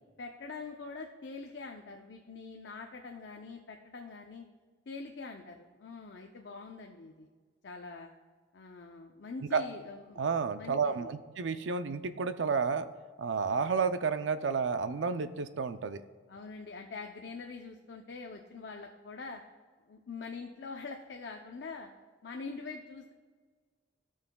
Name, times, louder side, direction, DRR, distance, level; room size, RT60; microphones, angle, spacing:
voice 1, 0.2-4.4 4.9-7.3 7.6-8.1 8.5-10.2 10.5-11.1 15.1-15.2 16.3-19.4 19.9-21.9 22.2-23.1, left 4 dB, 75° left, 3 dB, 0.6 m, -44 dB
voice 2, 10.2-12.9 13.2-16.0, right 5 dB, 90° right, 11 dB, 0.5 m, -31 dB
16.0 x 6.3 x 2.3 m, 1.5 s
head